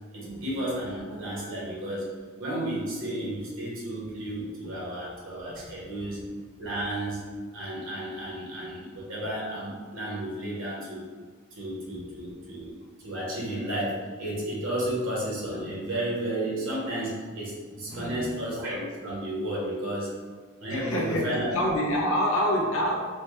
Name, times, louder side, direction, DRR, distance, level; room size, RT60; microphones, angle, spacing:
voice 1, 0.1-2.1 2.4-6.2 6.6-7.2 7.5-11.0 11.5-12.7 13.0-20.1 20.6-21.6 22.0-22.1, right 1 dB, 65° right, -5 dB, 1.0 m, -32 dB
voice 2, 17.9-18.2 20.7-23.0, equal, 80° left, -1 dB, 0.8 m, -26 dB
4.3 x 2.2 x 3.0 m, 1.5 s
head